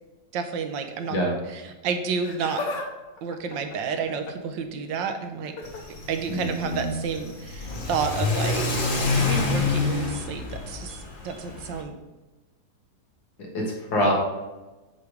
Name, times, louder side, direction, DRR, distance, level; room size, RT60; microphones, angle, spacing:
voice 1, 0.3-1.2 1.5-2.7 3.2-5.5 6.1-8.7 9.1-12.0, right 6 dB, 80° right, 6 dB, 1.4 m, -30 dB
Laughter, 2.1-2.9 3.2-4.5 5.4-5.8 7.1-7.3 8.2-8.3, left 3 dB, 70° left, 1.5 m, -35 dB
Car / Accelerating revving vroom, 5.6-11.8, left 3 dB, 40° left, 0.7 m, -28 dB
voice 2, 6.3-6.9 13.4-14.1, equal, 90° left, -2 dB, 2.3 m, -25 dB
8.1 x 3.3 x 4.9 m, 1.1 s
omnidirectional pair, 2.0 m